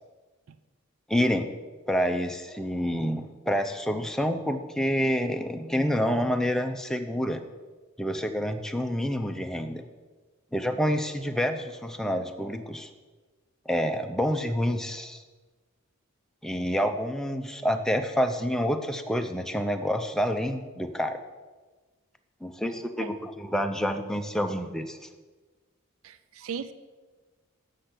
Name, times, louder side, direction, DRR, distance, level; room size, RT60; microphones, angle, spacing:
voice 1, 1.1-1.5 1.9-7.4 8.0-9.8 10.5-12.9 13.7-15.2 16.4-21.2 22.4-25.0, equal, ahead, 6 dB, 0.5 m, -28 dB
voice 2, 26.0-26.7, right 6 dB, 75° right, 12 dB, 0.5 m, -36 dB
8.3 x 6.4 x 5.9 m, 1.3 s
head